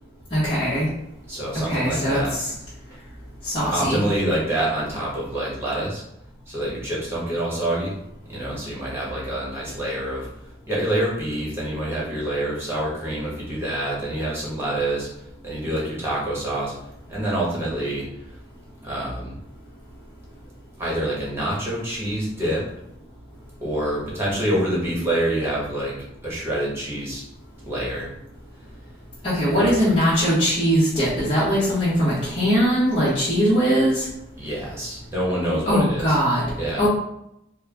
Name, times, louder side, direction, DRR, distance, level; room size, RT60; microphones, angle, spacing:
voice 1, 0.3-0.9 1.6-2.5 3.4-4.0 29.2-34.1 35.6-36.4 36.8-36.9, equal, 30° left, -13 dB, 1.4 m, -21 dB
voice 2, 1.3-2.3 3.7-6.0 6.5-7.9 8.3-10.3 10.7-15.1 15.4-16.7 17.1-18.1 18.8-19.4 20.8-22.7 23.6-25.9 26.2-27.2 27.6-28.1 29.4-29.8 34.4-36.2 36.6-36.9, right 1 dB, 15° right, -5 dB, 1.3 m, -26 dB
4.5 x 2.3 x 3.5 m, 0.81 s
head